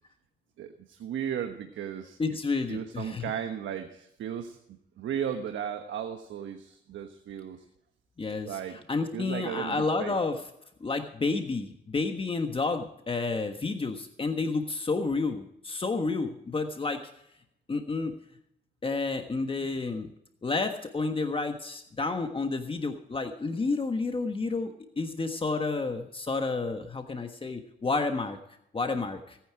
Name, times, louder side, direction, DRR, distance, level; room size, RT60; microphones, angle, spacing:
voice 1, 0.6-2.2 2.7-4.6 5.0-7.6 8.4-8.8 9.1-10.1, right 9 dB, 75° right, 7 dB, 1.2 m, -35 dB
voice 2, 2.2-3.3 8.2-10.4 10.8-17.1 17.7-18.1 18.8-20.1 20.4-28.4 28.7-29.4, left 3 dB, 25° left, 6 dB, 1.4 m, -30 dB
18.5 x 9.5 x 4.8 m, 0.76 s
cardioid pair, 90°, 20 cm